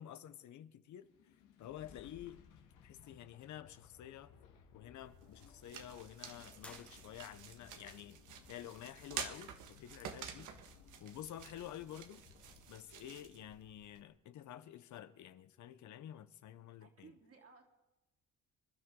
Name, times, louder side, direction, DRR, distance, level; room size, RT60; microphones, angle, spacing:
voice 1, 0.0-1.3 1.6-2.4 2.8-4.4 4.7-8.2 8.5-10.5 11.0-12.2 12.7-17.1, left 11 dB, 75° left, 0.9 m, -50 dB
sound 1, 1.0-14.1, left 7 dB, 90° left, 1.8 m, -62 dB
sound 2, 5.0-14.0, right 8 dB, 85° right, 1.6 m, -50 dB
sound 3, 6.6-7.6, left 1 dB, 5° left, 1.2 m, -58 dB
voice 2, 16.8-17.6, right 5 dB, 50° right, 3.5 m, -60 dB
27.0 x 12.5 x 3.8 m
cardioid pair, 90°, 30 cm